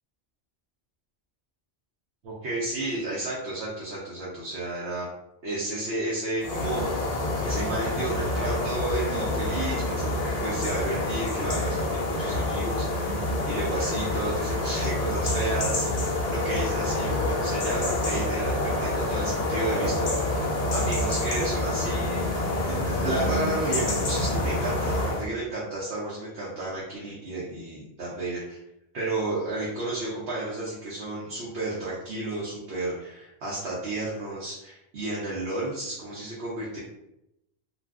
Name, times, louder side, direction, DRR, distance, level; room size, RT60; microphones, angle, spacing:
voice 1, 2.2-5.1 5.4-7.0 7.4-22.2 22.6-28.6 28.9-36.8, right 2 dB, 85° right, -6 dB, 1.0 m, -32 dB
sound 1, 6.4-25.3, left 1 dB, 45° left, 0.6 m, -27 dB
2.5 x 2.3 x 3.4 m, 0.86 s
omnidirectional pair, 1.0 m